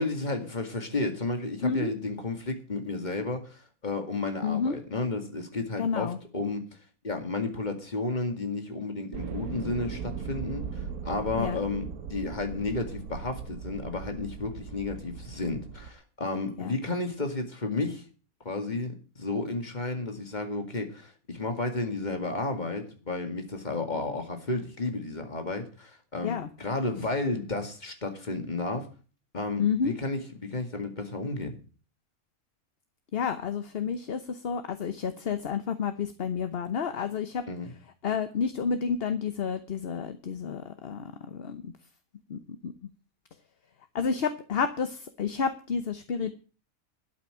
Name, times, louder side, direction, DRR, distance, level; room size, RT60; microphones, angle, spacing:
voice 1, 0.0-6.6 7.0-11.8 12.1-18.0 18.4-28.9 29.3-31.6 37.5-37.7, left 3 dB, 30° left, 5 dB, 2.2 m, -32 dB
voice 2, 1.6-1.9 4.4-4.8 5.8-6.2 11.4-11.6 16.6-16.7 26.2-26.5 29.6-29.9 33.1-37.4 38.0-41.7 42.3-42.7 43.9-46.3, left 6 dB, 50° left, 10 dB, 1.0 m, -30 dB
sound 1, 9.1-15.9, right 6 dB, 90° right, 1.4 m, -38 dB
12.5 x 5.9 x 8.7 m, 0.37 s
omnidirectional pair, 1.5 m